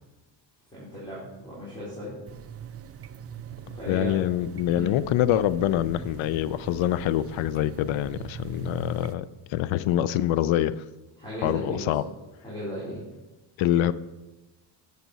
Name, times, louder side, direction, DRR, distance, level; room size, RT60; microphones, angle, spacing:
voice 1, 0.7-2.1 3.8-4.1 4.7-5.0 11.2-11.9 12.4-13.0, equal, 10° left, -9 dB, 3.5 m, -35 dB
sound 1, 2.3-9.1, right 9 dB, 35° right, 0.4 m, -41 dB
voice 2, 3.9-9.2 9.5-10.8 11.4-12.0 13.6-13.9, left 12 dB, 70° left, 17 dB, 0.6 m, -25 dB
11.0 x 6.9 x 4.0 m, 1.1 s
cardioid pair, 115°, 49 cm